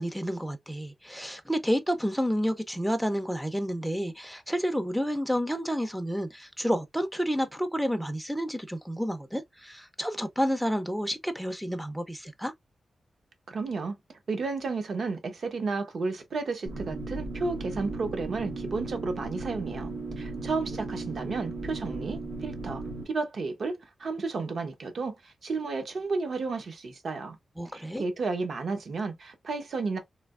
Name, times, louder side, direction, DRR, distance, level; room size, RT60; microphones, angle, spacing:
voice 1, 0.0-12.5 27.6-28.0, equal, ahead, 0.4 m, -30 dB
voice 2, 13.5-14.0 14.3-27.4 27.7-30.0, right 4 dB, 55° right, 0.7 m, -32 dB
sound 1, 16.7-23.0, right 3 dB, 90° right, 1.3 m, -36 dB
3.3 x 2.7 x 2.3 m
wide cardioid pair, 145°, 0 cm